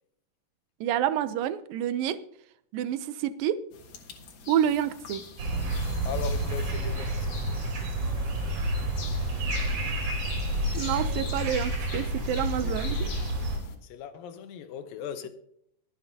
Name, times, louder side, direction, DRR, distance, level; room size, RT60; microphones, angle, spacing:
voice 1, 0.8-2.2 2.7-3.6 4.5-5.2 8.2-8.5 10.7-13.1, right 10 dB, 85° right, 2.4 m, -28 dB
sound 1, 3.7-13.8, left 4 dB, 60° left, 2.6 m, -45 dB
sound 2, 5.4-13.6, right 1 dB, 65° right, 4.5 m, -29 dB
voice 2, 6.0-7.4 10.5-10.9 12.6-13.2 13.8-15.3, left 8 dB, 85° left, 2.7 m, -39 dB
22.5 x 7.8 x 2.8 m
omnidirectional pair, 4.0 m